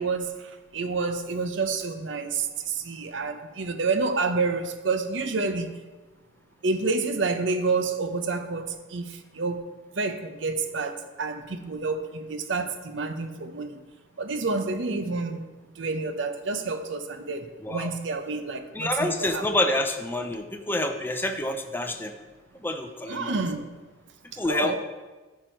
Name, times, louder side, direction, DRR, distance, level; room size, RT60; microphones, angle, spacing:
voice 1, 0.0-5.7 6.6-9.6 9.9-13.8 14.2-15.5 15.8-19.4 23.1-23.7 24.3-24.8, right 4 dB, 65° right, 8 dB, 0.7 m, -29 dB
voice 2, 18.7-22.1 22.6-23.3 24.4-24.8, left 1 dB, 10° left, 5 dB, 0.5 m, -27 dB
13.0 x 4.8 x 4.5 m, 1.2 s
head